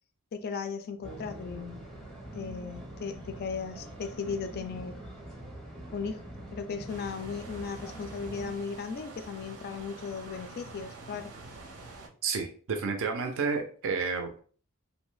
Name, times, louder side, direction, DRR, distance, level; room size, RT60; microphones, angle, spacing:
voice 1, 0.3-1.8 2.3-5.0 5.9-6.2 6.5-11.3, left 5 dB, 45° left, 8 dB, 0.3 m, -36 dB
sound 1, 1.0-8.5, right 1 dB, 5° left, 0.6 m, -44 dB
sound 2, 6.9-12.1, right 3 dB, 90° right, 0.7 m, -46 dB
voice 2, 12.2-14.4, right 5 dB, 60° right, 4 dB, 0.4 m, -31 dB
2.6 x 2.1 x 3.1 m, 0.43 s
head